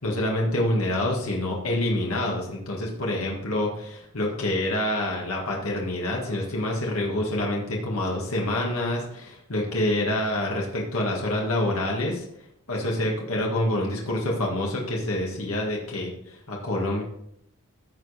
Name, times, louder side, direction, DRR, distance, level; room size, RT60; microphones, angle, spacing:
voice 1, 0.0-12.3 12.7-17.0, left 1 dB, 75° left, -1 dB, 1.8 m, -27 dB
14.5 x 5.0 x 4.2 m, 0.75 s
head